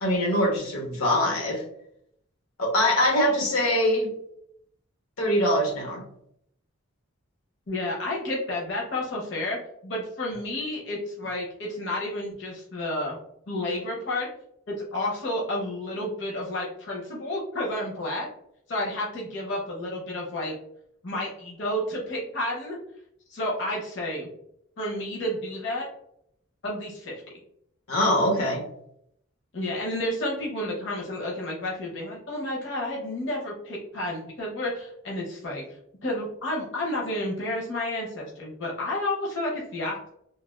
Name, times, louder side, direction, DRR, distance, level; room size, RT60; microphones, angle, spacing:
voice 1, 0.0-1.6 2.6-4.1 5.2-6.0 27.9-28.6, left 1 dB, 90° left, 0 dB, 0.9 m, -23 dB
voice 2, 7.7-9.6 9.8-13.2 13.5-14.3 14.7-18.3 18.7-20.5 21.0-22.8 23.3-24.3 24.8-25.9 26.6-27.2 29.5-35.6 36.0-40.1, left 1 dB, 55° left, -3 dB, 0.6 m, -31 dB
3.3 x 2.3 x 2.3 m, 0.72 s
head